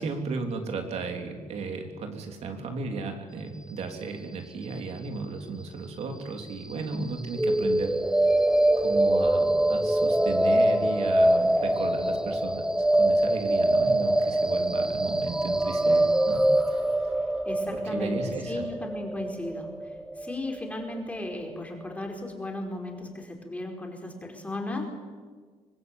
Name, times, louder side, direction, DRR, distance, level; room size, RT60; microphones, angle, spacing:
voice 1, 0.0-8.4 8.8-12.7 13.0-17.2 17.7-18.6, right 4 dB, 60° right, 4 dB, 3.3 m, -35 dB
sound 1, 7.3-21.3, right 1 dB, 5° right, 1.0 m, -24 dB
voice 2, 17.4-24.8, left 2 dB, 10° left, 2 dB, 4.9 m, -36 dB
25.0 x 19.5 x 9.2 m, 1.5 s
cardioid pair, 130°, 12 cm